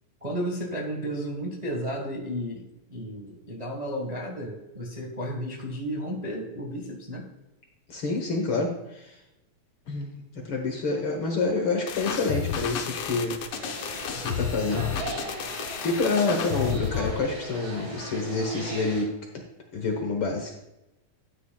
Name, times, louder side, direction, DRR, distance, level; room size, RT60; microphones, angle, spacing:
voice 1, 0.2-7.3, equal, 25° right, -1 dB, 0.9 m, -33 dB
voice 2, 7.9-9.2 9.9-10.2 10.5-13.4 14.1-14.9 15.3-15.4 15.8-19.4 19.7-20.5, left 3 dB, 55° left, 1 dB, 1.6 m, -28 dB
sound 1, 11.9-17.2, left 8 dB, 75° left, 1.2 m, -31 dB
sound 2, 13.5-19.0, right 2 dB, 75° right, 4.8 m, -38 dB
13.0 x 9.2 x 2.4 m, 0.93 s
omnidirectional pair, 3.4 m